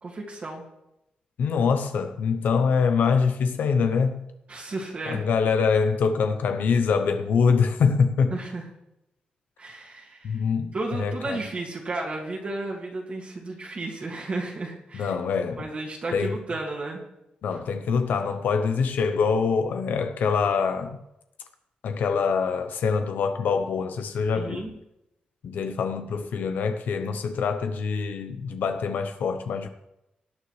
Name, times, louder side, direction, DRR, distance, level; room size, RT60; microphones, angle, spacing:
voice 1, 0.0-0.6 4.5-5.2 8.3-8.7 9.6-10.4 10.7-15.1 15.6-17.0 24.4-24.7, right 2 dB, 45° right, 2.1 m, -33 dB
voice 2, 1.4-4.3 5.1-8.4 10.2-11.4 14.9-15.7 16.1-16.4 17.4-21.0 21.8-24.7 25.4-29.7, left 5 dB, 90° left, 0.8 m, -24 dB
17.5 x 9.7 x 3.2 m
wide cardioid pair, 120°, 3 cm